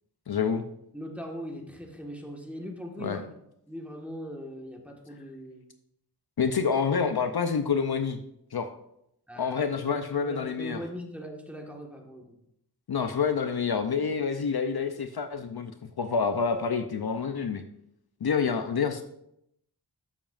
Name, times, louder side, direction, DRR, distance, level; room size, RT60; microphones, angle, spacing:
voice 1, 0.3-0.6 3.0-3.2 6.4-8.2 8.5-8.7 9.4-10.8 12.9-15.7 16.0-17.6 18.2-19.0, left 6 dB, 60° left, 8 dB, 0.6 m, -27 dB
voice 2, 0.9-3.3 3.7-5.6 9.3-12.3, equal, 5° right, 1 dB, 1.5 m, -40 dB
12.5 x 7.1 x 2.5 m, 0.77 s
wide cardioid pair, 60°, 42 cm